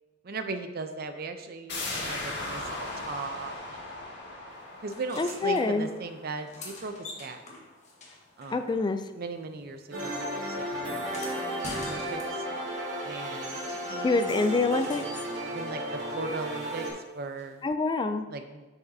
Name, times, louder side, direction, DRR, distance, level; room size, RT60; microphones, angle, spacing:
voice 1, 0.2-3.8 4.8-7.4 8.4-8.7 9.1-11.1 11.8-12.4 13.0-14.4 15.5-15.8 16.1-17.7 18.3-18.7, right 3 dB, 55° right, 8 dB, 0.6 m, -38 dB
sound 1, 1.7-7.2 7.5-7.6, left 2 dB, 60° left, 1.9 m, -38 dB
sound 2, 4.9-5.6 6.3-9.2 9.5-12.7 14.1-15.4 17.4-17.5, left 2 dB, 40° left, 1.3 m, -45 dB
voice 2, 5.2-5.9 8.5-9.0 14.0-15.0 17.6-18.3, left 3 dB, 25° left, 9 dB, 0.3 m, -26 dB
sound 3, 9.9-16.9, right 1 dB, 75° right, 2.3 m, -34 dB
7.7 x 7.3 x 2.7 m, 1.2 s
head